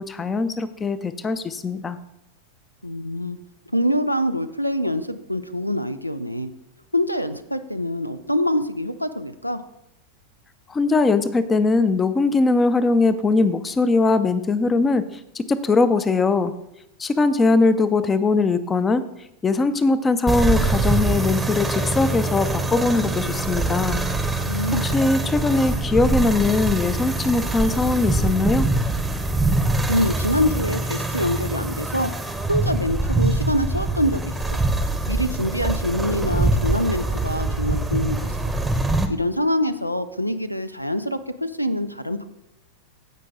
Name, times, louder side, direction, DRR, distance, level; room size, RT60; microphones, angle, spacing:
voice 1, 0.0-2.0 10.7-16.5 17.0-19.0 19.4-24.0 24.4-24.5 24.8-28.7, left 3 dB, 15° left, 13 dB, 0.6 m, -21 dB
voice 2, 2.8-3.4 3.7-6.5 6.9-9.6 24.5-24.8 29.9-32.1 32.5-34.6 35.1-38.3 39.1-42.2, left 1 dB, 90° left, 13 dB, 0.5 m, -25 dB
sound 1, 20.3-39.1, right 2 dB, 5° right, 0.9 m, -24 dB
15.5 x 5.3 x 3.7 m, 0.83 s
figure-of-eight pair, 90°, 0 cm